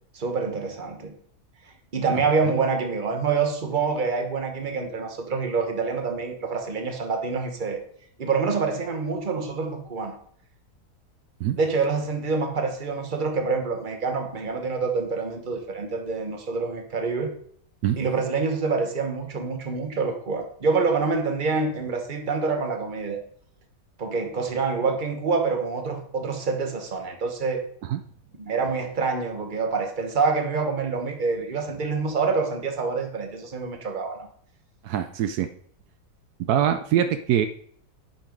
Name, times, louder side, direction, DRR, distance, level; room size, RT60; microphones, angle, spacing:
voice 1, 0.1-1.1 1.9-7.8 8.2-10.2 11.6-17.3 18.0-23.2 24.0-27.7 28.4-34.2 36.9-37.0, right 4 dB, 35° right, 4 dB, 1.3 m, -26 dB
voice 2, 34.8-35.5 36.5-37.5, right 10 dB, 80° right, 9 dB, 1.1 m, -23 dB
10.0 x 5.5 x 5.2 m, 0.62 s
omnidirectional pair, 1.7 m